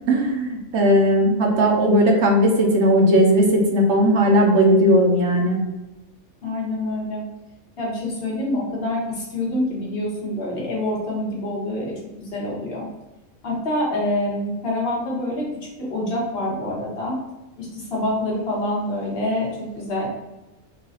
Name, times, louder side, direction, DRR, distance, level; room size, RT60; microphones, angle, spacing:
voice 1, 0.1-5.6, equal, 65° right, 0 dB, 1.0 m, -17 dB
voice 2, 6.4-7.2 7.8-11.9 12.2-12.9 13.4-15.5 15.8-17.2 17.6-20.1, left 1 dB, 50° left, -4 dB, 1.4 m, -26 dB
3.9 x 2.3 x 4.0 m, 1.0 s
omnidirectional pair, 1.3 m